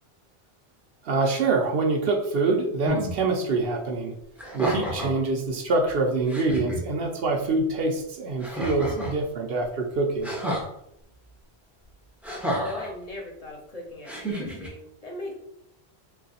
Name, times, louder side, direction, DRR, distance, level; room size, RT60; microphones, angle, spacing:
voice 1, 1.0-4.1 4.5-10.3, right 3 dB, 65° right, 3 dB, 0.8 m, -25 dB
sound 1, 2.8-3.1 4.4-5.2 5.9-6.0 6.3-6.8 8.4-9.2 10.2-10.7 12.2-12.9 14.0-14.7, right 1 dB, ahead, 0.5 m, -30 dB
voice 2, 12.6-15.3, left 2 dB, 40° left, -1 dB, 0.7 m, -38 dB
3.2 x 2.4 x 4.0 m, 0.78 s
omnidirectional pair, 1.1 m